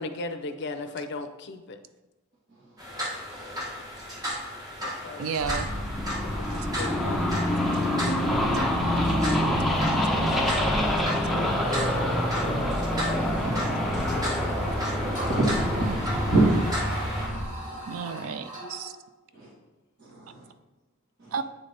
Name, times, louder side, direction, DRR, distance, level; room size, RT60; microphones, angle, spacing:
voice 1, 0.0-1.8 4.8-5.3 6.2-7.7 8.0-8.3, left 2 dB, 55° left, 8 dB, 0.5 m, -37 dB
sound 1, 2.8-17.3, equal, 20° right, 1.3 m, -35 dB
voice 2, 5.2-5.7 15.4-16.0 17.9-18.9 21.3-21.4, right 6 dB, 80° right, 11 dB, 0.4 m, -33 dB
sound 2, 5.4-17.5, left 1 dB, ahead, 0.7 m, -26 dB
sound 3, 8.8-19.0, right 1 dB, 35° right, 1.9 m, -40 dB
voice 3, 15.0-18.0 19.3-19.5 20.0-20.4 21.2-21.3, right 2 dB, 50° right, -8 dB, 1.4 m, -28 dB
8.5 x 4.0 x 3.4 m, 1.1 s
head